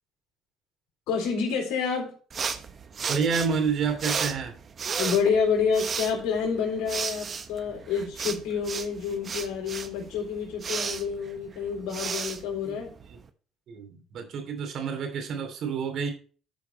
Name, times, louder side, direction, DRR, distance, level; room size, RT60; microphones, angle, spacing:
voice 1, 1.1-2.1 5.0-12.9, left 6 dB, 75° left, -1 dB, 3.8 m, -28 dB
sound 1, 2.3-13.3, right 6 dB, 45° right, 1.1 m, -34 dB
voice 2, 3.1-4.5 12.7-12.8 13.1-13.2 13.7-16.1, right 5 dB, 60° right, 5 dB, 2.9 m, -29 dB
12.0 x 4.8 x 4.1 m, 0.39 s
supercardioid pair, 85°, 0 cm